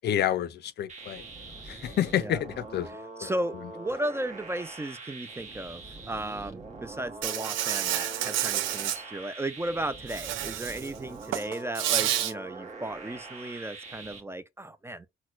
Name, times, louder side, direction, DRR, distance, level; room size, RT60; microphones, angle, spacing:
voice 1, 0.0-1.2 1.6-2.9 3.2-3.3, left 10 dB, 60° left, 0.4 m, -29 dB
sound 1, 0.9-14.2, right 3 dB, 35° right, 1.0 m, -43 dB
voice 2, 2.9-15.1, right 1 dB, 15° right, 0.3 m, -35 dB
Insect, 7.2-9.0 10.1-10.9 11.2-12.3, right 12 dB, 80° right, 0.4 m, -29 dB
4.2 x 2.1 x 2.4 m
cardioid pair, 90°, 20 cm